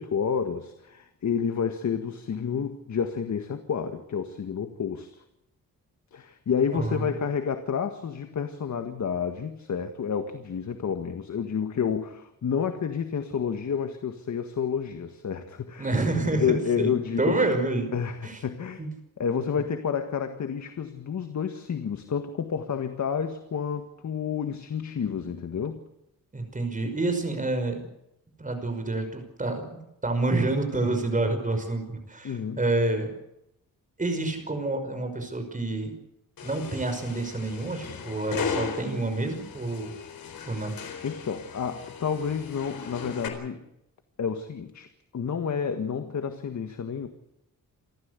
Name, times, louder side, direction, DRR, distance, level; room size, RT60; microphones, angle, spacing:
voice 1, 0.0-5.2 6.1-15.9 16.3-17.4 17.9-18.8 19.2-25.8 32.2-32.6 41.0-43.6 44.2-44.9 45.1-47.1, left 7 dB, 55° left, 8 dB, 1.7 m, -30 dB
voice 2, 6.7-7.1 15.8-17.9 18.2-18.4 18.8-18.9 26.3-27.8 28.4-29.6 30.0-33.1 34.0-35.9 36.4-39.9 40.5-40.7, right 2 dB, 25° right, 6 dB, 5.5 m, -28 dB
sound 1, 36.4-43.3, left 6 dB, 80° left, 4.2 m, -37 dB
28.0 x 14.0 x 8.3 m, 0.84 s
wide cardioid pair, 120°, 34 cm